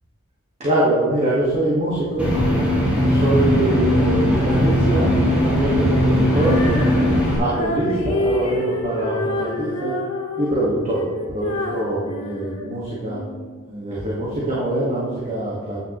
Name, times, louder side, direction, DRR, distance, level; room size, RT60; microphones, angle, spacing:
voice 1, 0.6-2.3 3.0-5.1 5.4-6.6 7.3-9.9 10.4-11.1 11.3-13.2 13.7-15.8, right 1 dB, 30° right, -6 dB, 1.7 m, -23 dB
sound 1, 2.2-7.4, equal, 5° right, 3.4 m, -18 dB
Female singing, 6.2-13.3, left 2 dB, 75° left, 1.9 m, -28 dB
12.5 x 9.2 x 3.1 m, 1.5 s
head